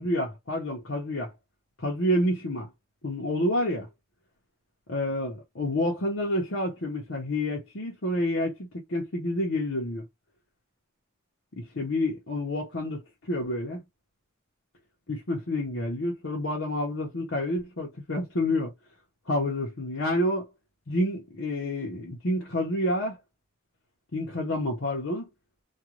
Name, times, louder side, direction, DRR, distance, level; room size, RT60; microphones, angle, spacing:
voice 1, 0.0-1.3 1.8-2.7 3.0-3.9 4.9-10.0 11.6-13.0 13.3-13.8 15.1-18.7 19.3-20.5 20.9-23.2 24.1-25.3, left 1 dB, 70° left, 0.9 m, -28 dB
2.5 x 2.4 x 3.0 m
head